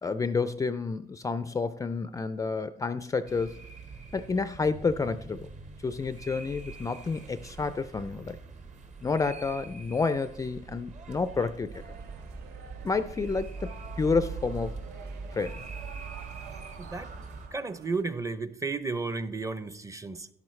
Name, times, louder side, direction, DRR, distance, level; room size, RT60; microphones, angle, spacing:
voice 1, 0.0-3.5 4.1-5.5 5.8-8.4 9.0-11.8 12.8-14.7 15.3-15.6, left 4 dB, 20° left, 0.4 m, -30 dB
sound 1, 3.3-17.5, right 4 dB, 45° right, 1.2 m, -43 dB
sound 2, 11.7-18.0, right 6 dB, 70° right, 0.9 m, -49 dB
voice 2, 16.8-17.1 17.5-20.3, right 4 dB, 20° right, 0.6 m, -33 dB
12.0 x 11.0 x 3.2 m
cardioid pair, 110°, 17 cm